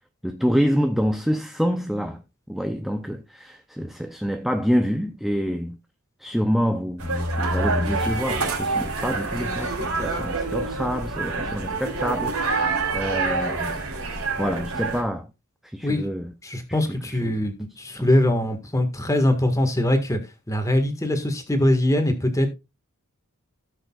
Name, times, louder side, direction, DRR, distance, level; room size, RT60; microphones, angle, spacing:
voice 1, 0.2-2.2 2.5-5.8 6.2-13.8 14.4-15.3 15.6-16.3 16.7-17.4 17.9-18.1, equal, ahead, 0.5 m, -27 dB
sound 1, 7.0-15.0, right 3 dB, 80° right, 3.9 m, -26 dB
voice 2, 16.4-20.2 20.5-22.5, left 1 dB, 15° left, 1.6 m, -22 dB
17.0 x 6.6 x 2.4 m
head